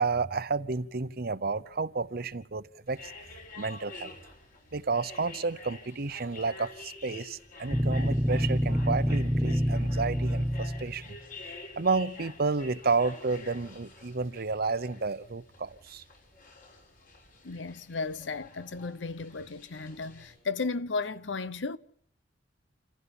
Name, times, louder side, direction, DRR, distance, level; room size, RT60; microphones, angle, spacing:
voice 1, 0.0-3.1 3.6-4.1 4.7-11.2 11.8-16.0, right 4 dB, 55° right, 0.9 m, -31 dB
sound 1, 2.9-20.3, left 3 dB, 50° left, 6.6 m, -48 dB
sound 2, 7.7-11.1, equal, 5° right, 0.8 m, -27 dB
voice 2, 17.4-21.8, left 4 dB, 85° left, 0.9 m, -34 dB
28.0 x 15.5 x 7.2 m
head